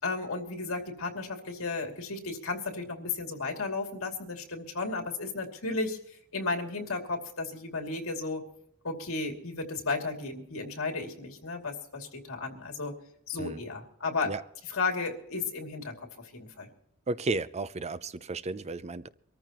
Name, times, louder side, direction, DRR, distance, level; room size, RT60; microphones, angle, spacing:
voice 1, 0.0-6.0 6.3-8.4 8.8-12.9 13.3-14.3 14.7-16.1 16.3-16.7, left 3 dB, 70° left, 2 dB, 2.6 m, -34 dB
voice 2, 17.1-19.1, right 3 dB, 30° right, 15 dB, 0.5 m, -33 dB
24.5 x 14.0 x 3.0 m, 0.73 s
head